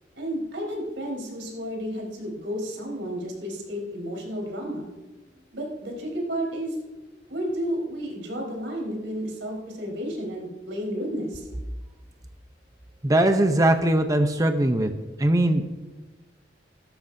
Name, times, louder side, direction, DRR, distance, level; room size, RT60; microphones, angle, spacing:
voice 1, 0.2-4.9 5.5-6.7 7.3-11.5, equal, 85° right, 0 dB, 4.3 m, -32 dB
voice 2, 13.0-14.9 15.2-15.7, right 1 dB, 20° right, 6 dB, 0.7 m, -20 dB
16.5 x 13.0 x 2.7 m, 1.2 s
head